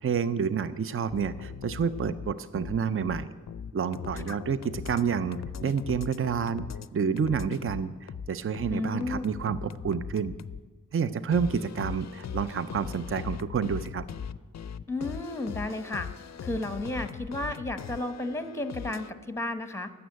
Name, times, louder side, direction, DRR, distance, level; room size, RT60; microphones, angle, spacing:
voice 1, 0.0-3.4 3.7-6.7 6.9-10.3 10.9-14.1, right 6 dB, 40° right, 13 dB, 0.5 m, -29 dB
sound 1, 1.1-6.9 7.2-10.6 11.3-19.1, left 7 dB, 55° left, 0.4 m, -39 dB
voice 2, 8.7-9.2 14.9-16.1 16.4-19.9, left 2 dB, 10° left, 10 dB, 0.9 m, -33 dB
12.5 x 7.0 x 9.3 m, 1.4 s
wide cardioid pair, 110°, 33 cm